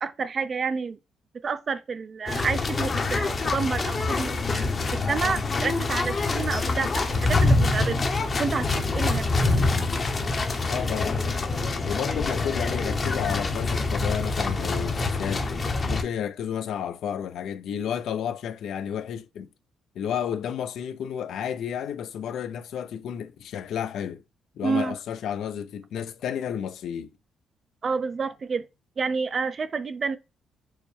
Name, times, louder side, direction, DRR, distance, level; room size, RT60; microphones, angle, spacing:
voice 1, 0.0-1.0 1.4-4.7 5.1-8.1 8.4-9.5 24.6-24.9 27.8-28.7 29.0-30.2, right 5 dB, 40° right, 0.4 m, -29 dB
sound 1, 2.3-16.0, left 3 dB, 35° left, 0.7 m, -25 dB
voice 2, 10.7-11.4 11.9-15.5 15.9-19.5 20.0-24.2 24.6-27.1, left 8 dB, 75° left, 0.4 m, -31 dB
4.5 x 2.1 x 3.2 m
cardioid pair, 90°, 0 cm